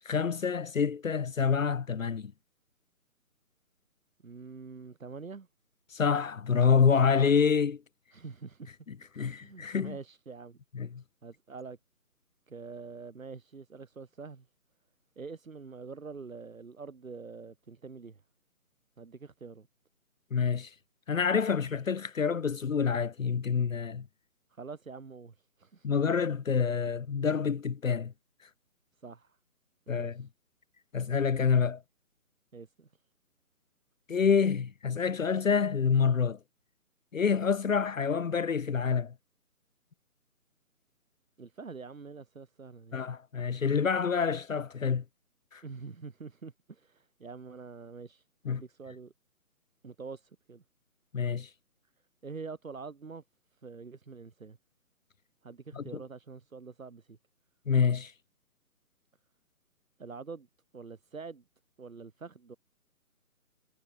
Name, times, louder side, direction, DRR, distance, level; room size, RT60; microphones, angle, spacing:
voice 1, 0.0-2.3 5.9-7.8 8.9-9.9 10.7-11.0 20.3-20.7 21.1-24.1 25.8-28.1 29.9-30.3 30.9-31.8 34.1-36.4 37.1-39.1 42.9-45.0 45.5-45.6 48.4-48.6 51.1-51.5 55.7-55.8 57.7-58.1, left 6 dB, 60° left, 1.1 m, -27 dB
voice 2, 4.2-5.5 8.1-8.7 9.1-10.6 11.2-11.8 12.5-14.5 15.2-18.2 19.0-19.7 24.5-26.0 29.0-29.4 29.9-30.3 32.5-32.9 41.4-43.0 45.6-49.1 49.8-50.6 52.2-53.2 53.6-54.6 55.4-57.2 60.0-60.5 60.7-61.4 61.8-62.6, right 4 dB, 60° right, 7.3 m, -45 dB
figure-of-eight pair, 150°, 45 cm